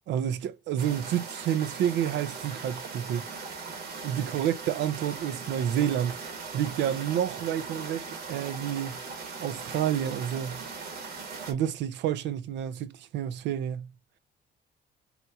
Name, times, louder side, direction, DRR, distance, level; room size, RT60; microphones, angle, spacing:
voice 1, 0.1-3.2 4.0-6.2 6.5-9.0 9.4-10.6 11.5-13.9, right 10 dB, 80° right, 0.5 m, -29 dB
sound 1, 0.8-11.5, right 4 dB, 60° right, 1.2 m, -39 dB
4.2 x 2.8 x 2.2 m
cardioid pair, 155°, 18 cm